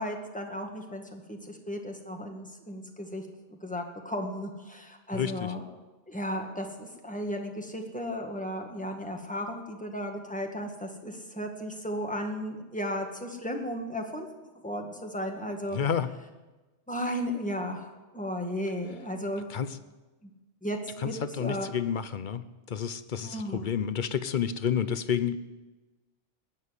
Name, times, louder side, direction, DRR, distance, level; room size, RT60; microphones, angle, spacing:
voice 1, 0.0-3.2 3.5-5.6 6.1-14.3 14.6-15.8 16.9-19.5 20.2-20.3 20.6-21.7 23.2-23.7, equal, 5° left, 2 dB, 1.7 m, -35 dB
voice 2, 5.1-5.5 15.7-16.1 19.5-19.8 21.0-25.4, left 8 dB, 50° left, 13 dB, 0.8 m, -30 dB
19.0 x 7.5 x 9.7 m, 1.2 s
omnidirectional pair, 1.2 m